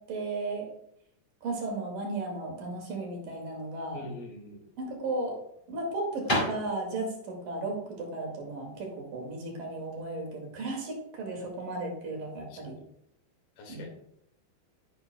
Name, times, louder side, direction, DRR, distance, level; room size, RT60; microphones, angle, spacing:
voice 1, 0.1-0.7 1.4-4.1 4.8-5.4 5.7-12.8 13.7-13.9, right 2 dB, 60° right, 1 dB, 3.6 m, -35 dB
voice 2, 3.9-4.7 12.5-12.8 13.6-13.9, left 3 dB, 75° left, 2 dB, 3.9 m, -44 dB
sound 1, 4.4-10.0, equal, 15° left, 3.7 m, -35 dB
13.0 x 9.6 x 2.2 m, 0.75 s
omnidirectional pair, 4.5 m